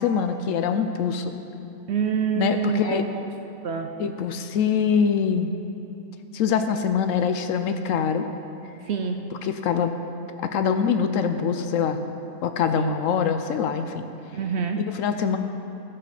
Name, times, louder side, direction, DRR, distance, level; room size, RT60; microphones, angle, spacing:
voice 1, 0.0-1.3 2.3-3.1 4.0-5.5 6.3-8.3 9.3-9.9 10.4-12.0 12.4-14.0 14.8-15.4, left 7 dB, 65° left, 8 dB, 0.8 m, -24 dB
voice 2, 1.9-3.0 3.6-3.9 8.9-9.2 12.8-13.0 14.3-14.8, right 7 dB, 75° right, 5 dB, 0.6 m, -26 dB
15.0 x 5.8 x 4.9 m, 2.9 s
omnidirectional pair, 1.7 m